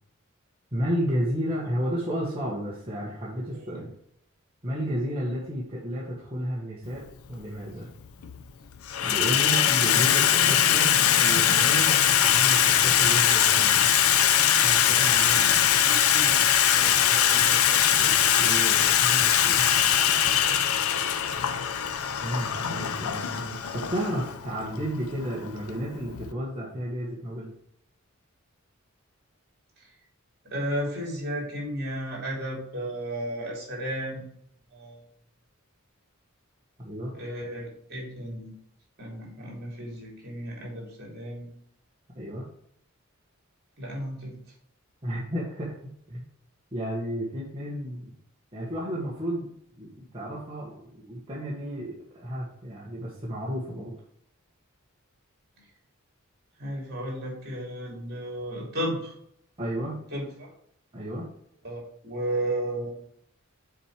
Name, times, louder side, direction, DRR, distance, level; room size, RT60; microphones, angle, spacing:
voice 1, 0.7-3.9 4.6-7.9 9.0-13.9 14.3-16.0 17.9-19.7 22.2-27.5 36.8-37.1 42.1-42.5 45.0-45.8 46.1-46.2 46.7-48.2 48.5-49.5 49.8-53.9 59.6-60.0 60.9-61.3, equal, 25° right, -6 dB, 1.4 m, -32 dB
voice 2, 3.5-3.8 15.8-16.5 16.7-17.8 29.8-29.9 30.4-34.3 34.7-35.0 37.1-38.5 39.0-41.5 43.8-44.4 56.6-59.1 60.1-60.5 61.6-62.9, right 1 dB, 50° right, -1 dB, 3.0 m, -34 dB
Water tap faucet / Sink (filling or washing), 7.0-7.1 8.0-8.4 8.7-26.3, left 9 dB, 90° left, 0.6 m, -22 dB
6.6 x 4.4 x 4.8 m, 0.70 s
head